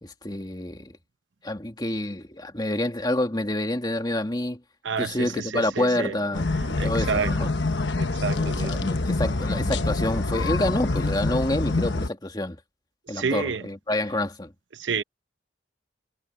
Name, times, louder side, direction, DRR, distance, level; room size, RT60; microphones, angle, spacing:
voice 1, 0.0-0.9 1.4-4.6 5.0-7.5 8.4-12.6 13.1-14.5, left 1 dB, 20° left, 2.1 m, -28 dB
voice 2, 4.8-6.1 6.8-7.5 7.9-8.9 13.1-13.6 14.7-15.0, right 5 dB, 85° right, 0.8 m, -29 dB
sound 1, 6.3-12.1, left 2 dB, 70° left, 1.1 m, -26 dB
head